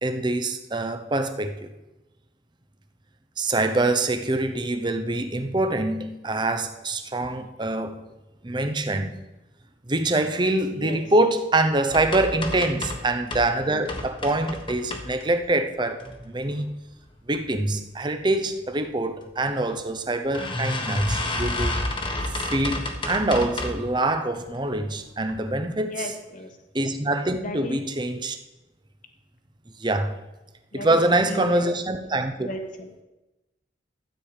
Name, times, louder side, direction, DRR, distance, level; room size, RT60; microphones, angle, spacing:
voice 1, 0.0-1.7 3.4-8.0 8.4-9.2 9.9-16.8 17.3-21.8 22.3-26.1 26.7-28.4 29.8-30.1 30.7-32.5, right 2 dB, 25° right, 8 dB, 0.8 m, -25 dB
voice 2, 10.7-11.0 25.9-26.5 27.4-27.8 30.7-31.7 32.4-32.9, left 1 dB, 45° left, 5 dB, 1.3 m, -34 dB
sound 1, 11.9-13.5 13.8-15.5 15.9-16.6 17.0-17.4 17.7-17.8 18.1-18.2 19.2-19.3 19.7-19.8 20.3-23.9 24.3-24.8 25.2-25.4 25.7-25.8, left 2 dB, 25° left, 1.3 m, -30 dB
13.0 x 8.6 x 5.0 m, 1.0 s
head